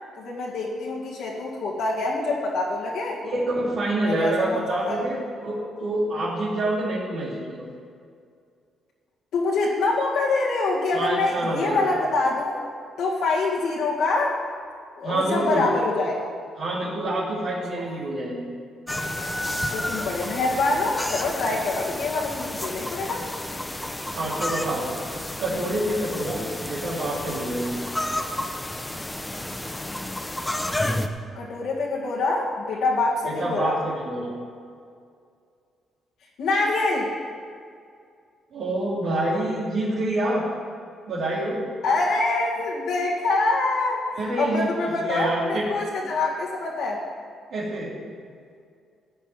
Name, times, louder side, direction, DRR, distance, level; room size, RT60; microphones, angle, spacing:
voice 1, 0.2-3.2 4.0-5.0 9.3-12.6 13.0-14.4 15.0-16.3 17.8-17.9 19.5-23.2 31.3-33.8 36.4-37.1 41.8-47.0, left 3 dB, 80° left, -5 dB, 2.2 m, -25 dB
voice 2, 3.2-7.6 10.9-11.9 15.0-15.7 16.6-18.5 24.1-24.9 25.4-27.7 33.2-34.3 38.5-40.5 41.1-41.6 44.1-45.7 47.5-48.0, right 1 dB, 65° right, -9 dB, 2.9 m, -27 dB
sound 1, 18.9-31.1, left 1 dB, 10° left, 0.9 m, -31 dB
15.0 x 5.4 x 9.4 m, 2.3 s
cardioid pair, 90°, 0 cm